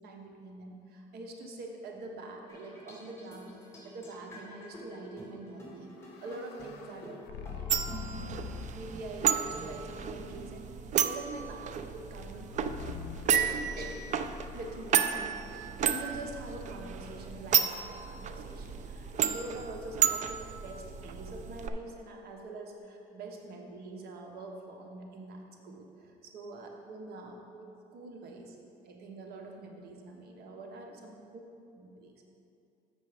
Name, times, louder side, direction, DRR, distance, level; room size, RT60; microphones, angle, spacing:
voice 1, 0.0-3.6 3.8-7.2 7.5-8.4 8.7-10.7 11.0-12.9 13.3-27.7 27.9-28.6 28.8-31.4 31.7-32.2, right 2 dB, 70° right, 2 dB, 1.2 m, -45 dB
sound 1, 2.5-11.9, right 1 dB, 15° left, 2.0 m, -49 dB
sound 2, 5.6-8.9 9.4-9.9 12.5-16.6, left 8 dB, 80° left, 0.6 m, -45 dB
sound 3, 7.7-21.7, right 8 dB, 45° right, 0.4 m, -32 dB
7.0 x 6.1 x 5.0 m, 2.7 s
cardioid pair, 110°, 17 cm